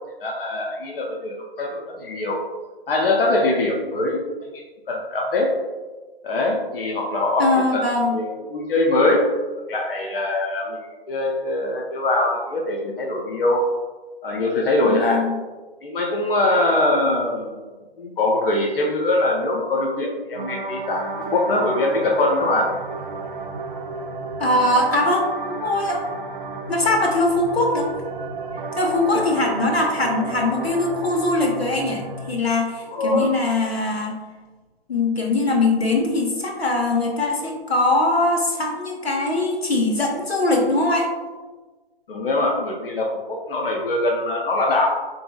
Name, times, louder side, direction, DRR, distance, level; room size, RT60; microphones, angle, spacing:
voice 1, 0.2-2.4 2.9-5.5 6.2-7.8 8.1-9.3 9.7-10.8 11.1-13.7 14.2-15.2 15.8-17.5 18.0-22.7 29.1-29.2 32.9-33.3 42.1-44.9, left 2 dB, 65° left, 0 dB, 0.6 m, -22 dB
voice 2, 7.4-8.2 14.8-15.4 24.4-26.0 26.7-27.9 28.8-34.2 34.9-41.1, left 2 dB, 90° left, 0 dB, 0.8 m, -21 dB
sound 1, 20.4-32.3, right 3 dB, 55° right, 0.5 m, -32 dB
3.6 x 2.8 x 2.2 m, 1.3 s
figure-of-eight pair, 135°, 30 cm